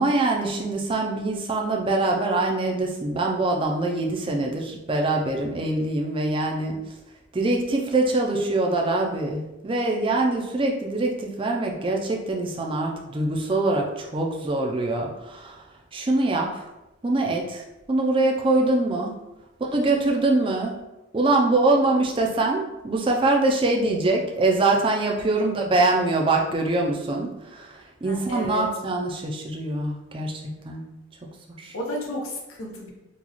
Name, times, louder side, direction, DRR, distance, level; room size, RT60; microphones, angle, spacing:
voice 1, 0.0-6.8 7.3-15.6 15.9-16.6 17.0-19.1 19.6-20.8 21.1-30.3 30.6-30.8 31.6-31.8, right 2 dB, 25° right, 1 dB, 0.4 m, -24 dB
voice 2, 28.0-28.6 31.7-32.9, equal, 85° left, -1 dB, 0.8 m, -32 dB
3.8 x 2.3 x 2.9 m, 0.98 s
head